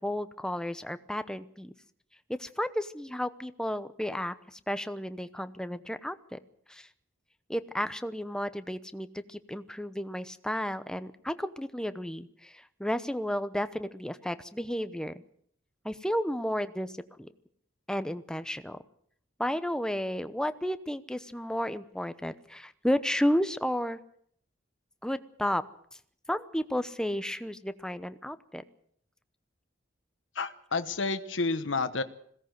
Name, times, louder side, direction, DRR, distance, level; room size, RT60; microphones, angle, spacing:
voice 1, 0.0-1.7 2.3-6.4 6.7-6.9 7.5-15.2 15.8-16.9 17.2-17.3 17.9-18.8 19.4-24.0 25.0-25.6 26.3-28.6, equal, 5° left, 11 dB, 0.9 m, -32 dB
voice 2, 30.3-32.0, left 3 dB, 80° left, 10 dB, 1.1 m, -30 dB
21.5 x 17.0 x 7.9 m, 0.66 s
head